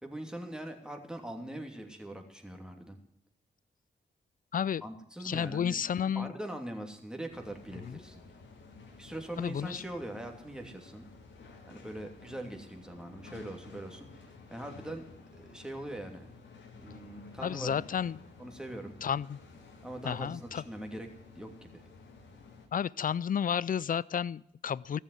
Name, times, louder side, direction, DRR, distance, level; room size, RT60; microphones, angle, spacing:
voice 1, 0.0-3.0 4.8-8.2 9.0-11.0 11.7-16.3 16.8-17.7 18.4-19.0 19.8-21.1 21.3-21.9, right 1 dB, 5° right, 3 dB, 2.9 m, -42 dB
voice 2, 4.5-4.8 5.2-6.3 7.8-8.0 9.4-9.8 17.4-18.2 19.0-19.4 20.0-20.6 22.7-25.0, left 8 dB, 45° left, 22 dB, 0.4 m, -32 dB
sound 1, 7.3-22.7, left 4 dB, 80° left, 2.5 m, -52 dB
14.5 x 7.4 x 9.4 m, 0.72 s
cardioid pair, 55°, 19 cm